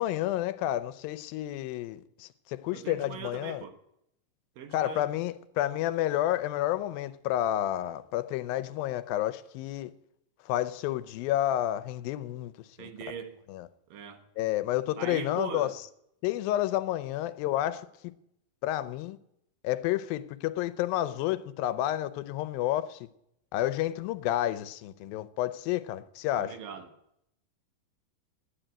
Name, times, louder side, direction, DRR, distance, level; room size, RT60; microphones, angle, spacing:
voice 1, 0.0-3.6 4.7-9.9 10.4-12.5 12.8-12.9 13.5-13.7 14.4-15.7 16.2-17.9 18.6-19.2 19.6-23.1 23.5-26.6, left 13 dB, 85° left, 2.5 m, -30 dB
voice 2, 2.7-3.7 4.6-5.1 12.8-13.4 13.9-14.2 15.0-15.8 26.4-26.9, right 7 dB, 75° right, 2.9 m, -40 dB
12.0 x 9.1 x 8.9 m
omnidirectional pair, 4.1 m